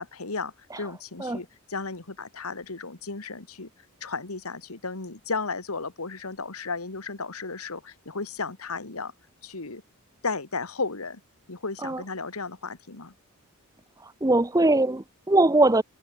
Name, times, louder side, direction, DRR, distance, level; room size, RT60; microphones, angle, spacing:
voice 1, 0.0-3.7 4.0-9.1 9.4-9.8 10.2-11.2 11.5-13.1, left 4 dB, 75° left, 1.9 m, -34 dB
voice 2, 14.0-15.8, right 2 dB, 15° right, 0.7 m, -21 dB
head